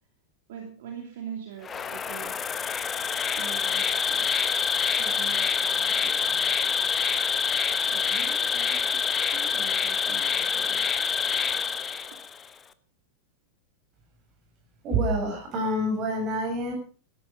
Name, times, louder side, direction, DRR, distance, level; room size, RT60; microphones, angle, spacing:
voice 1, 0.5-2.4 3.4-4.5 4.8-6.5 7.9-10.9 12.1-12.2, right 8 dB, 55° right, 3 dB, 2.8 m, -43 dB
Insect, 1.6-12.4, left 6 dB, 20° left, 1.0 m, -26 dB
voice 2, 14.8-16.7, right 1 dB, 35° right, 4 dB, 6.7 m, -27 dB
17.0 x 13.0 x 5.2 m, 0.40 s
figure-of-eight pair, 90°, 0 cm